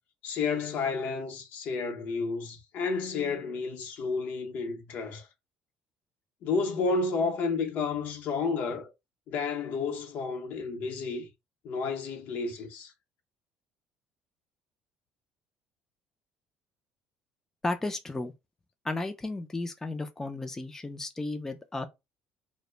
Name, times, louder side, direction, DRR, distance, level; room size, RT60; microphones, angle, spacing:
voice 1, 0.2-5.3 6.4-8.9 9.3-11.3 11.6-12.9, left 4 dB, 65° left, 0.7 m, -31 dB
voice 2, 17.6-18.3 18.8-21.9, left 2 dB, 15° left, 0.3 m, -34 dB
2.0 x 2.0 x 3.1 m
cardioid pair, 100°, 3 cm